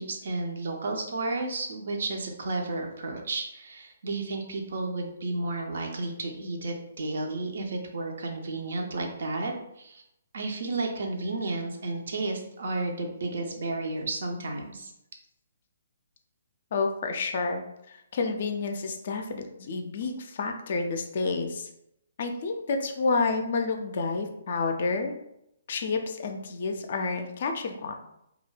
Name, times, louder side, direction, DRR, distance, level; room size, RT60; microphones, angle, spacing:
voice 1, 0.0-10.0 10.3-14.9, right 2 dB, 60° right, 2 dB, 0.5 m, -32 dB
voice 2, 16.7-21.7 22.2-25.1 25.7-27.9, left 4 dB, 50° left, 5 dB, 0.3 m, -29 dB
2.3 x 2.1 x 3.3 m, 0.80 s
figure-of-eight pair, 130°, 0 cm